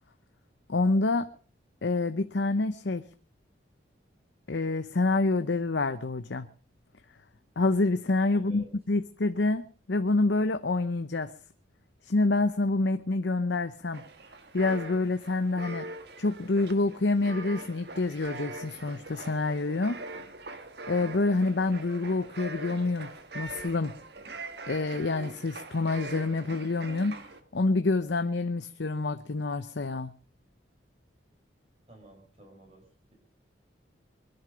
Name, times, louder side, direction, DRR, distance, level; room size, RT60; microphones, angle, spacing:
voice 1, 0.7-1.3 1.8-3.0 4.5-6.5 7.6-9.6 9.9-11.3 12.1-14.0 14.5-15.8 16.2-20.0 20.9-24.0 24.7-27.2 27.5-30.1, left 3 dB, 70° left, 9 dB, 0.8 m, -27 dB
voice 2, 8.3-8.7 31.9-33.1, right 1 dB, 35° right, 2 dB, 4.4 m, -53 dB
sound 1, 13.9-27.4, right 2 dB, 60° right, 1.6 m, -42 dB
23.0 x 10.5 x 5.1 m, 0.41 s
head